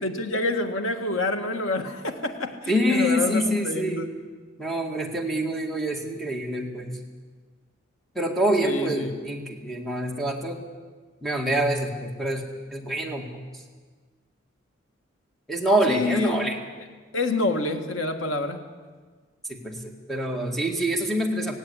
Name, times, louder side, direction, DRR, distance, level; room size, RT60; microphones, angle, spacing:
voice 1, 0.0-4.1 8.6-9.1 15.9-16.4 17.1-18.7, left 2 dB, 85° left, 6 dB, 1.8 m, -27 dB
voice 2, 2.7-4.1 4.6-7.0 8.2-10.6 11.2-12.5 12.7-13.4 15.5-16.6 19.5-19.8 20.1-21.6, right 1 dB, ahead, 2 dB, 2.0 m, -26 dB
17.5 x 16.5 x 9.8 m, 1.4 s
head